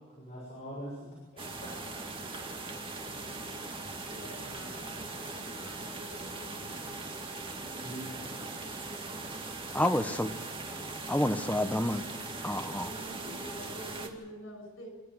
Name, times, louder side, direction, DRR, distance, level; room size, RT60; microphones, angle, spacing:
voice 1, 0.2-1.1 1.6-1.7 6.9-8.5, equal, 35° left, 6.4 m, -44 dB
sound 1, 1.4-14.1, right 3 dB, 25° right, 2.1 m, -40 dB
voice 2, 3.9-7.1 12.4-14.9, equal, 80° left, 6.9 m, -48 dB
voice 3, 9.7-10.3 11.1-12.0 12.4-12.9, left 1 dB, 10° left, 0.9 m, -29 dB
28.0 x 13.5 x 7.9 m
head